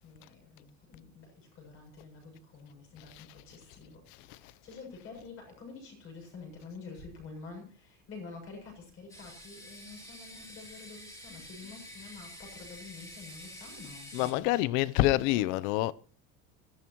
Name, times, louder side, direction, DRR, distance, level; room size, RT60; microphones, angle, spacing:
voice 1, 0.0-14.7 15.0-15.5, left 4 dB, 40° left, 7.4 m, -48 dB
sound 1, 9.1-14.3, equal, 10° left, 3.2 m, -48 dB
voice 2, 14.1-15.9, left 16 dB, 60° left, 0.7 m, -27 dB
24.5 x 14.5 x 3.0 m
cardioid pair, 180°, 34 cm